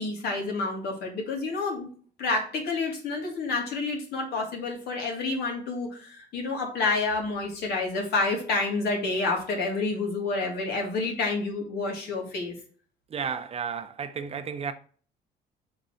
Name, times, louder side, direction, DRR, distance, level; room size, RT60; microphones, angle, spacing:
voice 1, 0.0-1.9 2.2-12.5, left 3 dB, 70° left, 2.5 m, -29 dB
voice 2, 13.1-14.7, right 6 dB, 35° right, 0.7 m, -32 dB
5.4 x 3.9 x 5.0 m
cardioid pair, 110°, 17 cm